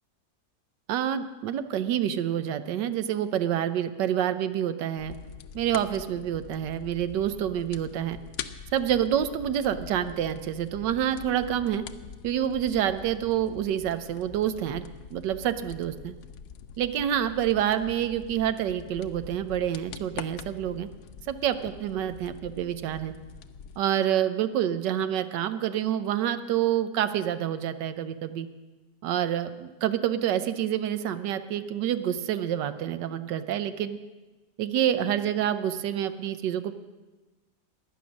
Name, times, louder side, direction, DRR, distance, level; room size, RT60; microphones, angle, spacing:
voice 1, 0.9-5.1 5.5-8.2 8.7-11.8 12.2-14.8 15.1-16.1 16.8-20.9 21.3-23.1 23.8-28.5 29.0-34.0 34.6-36.7, right 10 dB, 80° right, 11 dB, 1.3 m, -27 dB
sound 1, 5.0-23.8, left 7 dB, 70° left, 0.7 m, -44 dB
15.5 x 10.5 x 6.3 m, 1.2 s
omnidirectional pair, 1.9 m